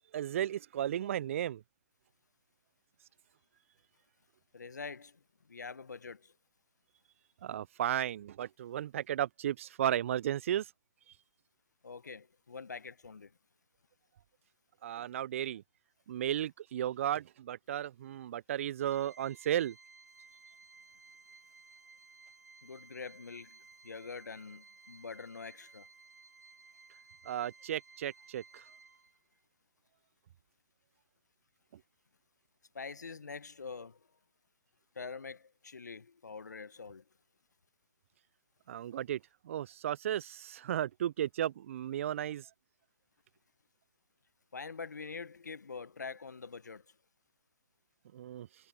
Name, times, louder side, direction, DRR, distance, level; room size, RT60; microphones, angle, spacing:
voice 1, 0.1-1.6 7.4-10.7 14.8-15.6 16.1-19.8 27.3-28.6 38.7-39.2 39.4-42.5 48.1-48.5, right 11 dB, 50° right, 0.3 m, -34 dB
voice 2, 4.5-5.2 5.5-6.3 11.8-13.3 22.6-25.9 32.7-34.0 34.9-37.0 44.5-46.8, left 5 dB, 85° left, 1.0 m, -45 dB
Organ, 18.8-29.4, right 4 dB, 85° right, 5.8 m, -58 dB
hypercardioid pair, 135°, 9 cm